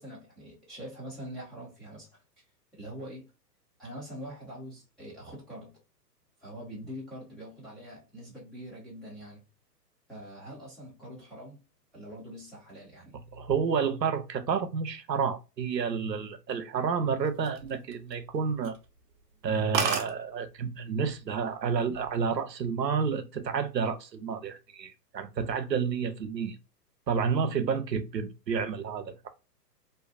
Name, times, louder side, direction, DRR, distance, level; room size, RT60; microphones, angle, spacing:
voice 1, 0.0-2.2 2.7-3.3 3.8-5.8 6.4-9.4 10.1-11.6 11.9-13.2, equal, ahead, 0.6 m, -44 dB
voice 2, 13.3-18.7 19.4-26.6 27.1-29.3, right 6 dB, 85° right, 0.6 m, -30 dB
sound 1, 17.2-18.3 18.6-18.8 19.2-19.3 19.5-19.6 19.7-20.1 21.0-21.3 21.7-22.1, right 6 dB, 45° right, 0.7 m, -31 dB
2.6 x 2.3 x 2.3 m
figure-of-eight pair, 115°, 49 cm